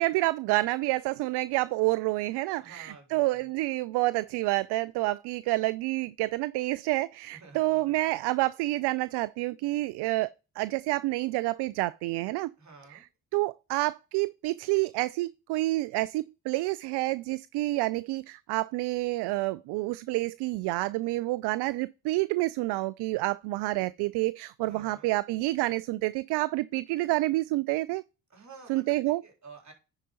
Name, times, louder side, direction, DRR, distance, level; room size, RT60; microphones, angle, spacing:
voice 1, 0.0-12.5 12.9-13.1 13.3-28.0 28.7-29.2, right 19 dB, 60° right, 0.5 m, -28 dB
voice 2, 2.6-3.5 7.3-8.2 12.6-13.0 24.6-25.1 28.3-29.7, right 4 dB, 35° right, 3.8 m, -51 dB
9.8 x 4.8 x 3.9 m
hypercardioid pair, 45°, 47 cm